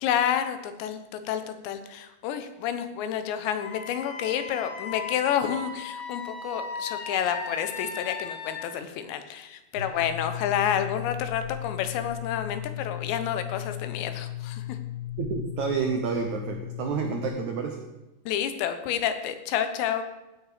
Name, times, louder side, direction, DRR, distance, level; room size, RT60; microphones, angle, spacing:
voice 1, 0.0-14.8 18.3-20.0, left 9 dB, 90° left, 9 dB, 3.3 m, -29 dB
Wind instrument woodwind instrument, 3.6-8.6, left 4 dB, 55° left, 2.2 m, -37 dB
sound 1, 9.8-17.3, left 12 dB, 50° right, 3.2 m, -36 dB
voice 2, 15.2-17.8, right 6 dB, 85° right, 4 dB, 1.6 m, -29 dB
16.5 x 8.8 x 5.1 m, 1.0 s
omnidirectional pair, 4.9 m